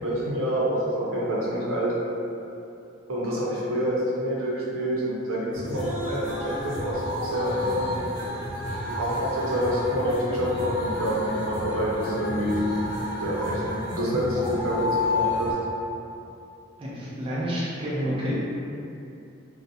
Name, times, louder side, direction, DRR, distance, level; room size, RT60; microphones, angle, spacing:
voice 1, 0.0-1.9 3.1-8.0 8.9-12.6 13.2-15.5, equal, 85° right, -6 dB, 0.6 m, -27 dB
sound 1, 5.5-15.5, left 1 dB, 20° left, 0.8 m, -31 dB
voice 2, 16.8-18.4, equal, 25° right, -8 dB, 0.4 m, -29 dB
2.4 x 2.0 x 2.6 m, 2.7 s
head